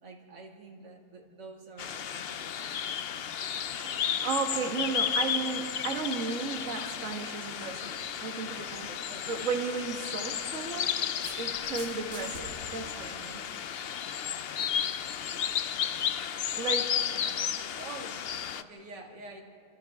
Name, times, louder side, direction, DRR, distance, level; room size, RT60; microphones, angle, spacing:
voice 1, 0.0-2.8 9.1-9.3 17.0-19.4, right 2 dB, 80° right, 1 dB, 2.8 m, -47 dB
sound 1, 1.8-18.6, left 8 dB, 80° left, 0.5 m, -33 dB
voice 2, 3.8-9.0 9.3-11.0 11.4-13.4 16.5-17.0, right 5 dB, 50° right, 2 dB, 1.7 m, -34 dB
sound 2, 11.2-12.4, left 1 dB, 45° left, 8.2 m, -45 dB
28.5 x 27.0 x 3.6 m, 2.3 s
omnidirectional pair, 1.8 m